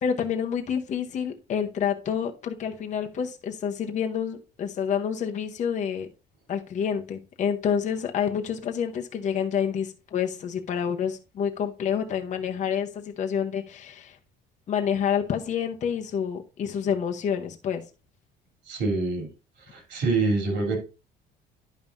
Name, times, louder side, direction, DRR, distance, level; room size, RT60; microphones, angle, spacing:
voice 1, 0.0-6.1 6.5-14.2 14.7-17.8, left 8 dB, 40° left, 0.9 m, -28 dB
voice 2, 18.7-19.3 19.7-20.8, right 3 dB, 80° right, 3.2 m, -26 dB
10.5 x 5.4 x 2.6 m
cardioid pair, 130°, 18 cm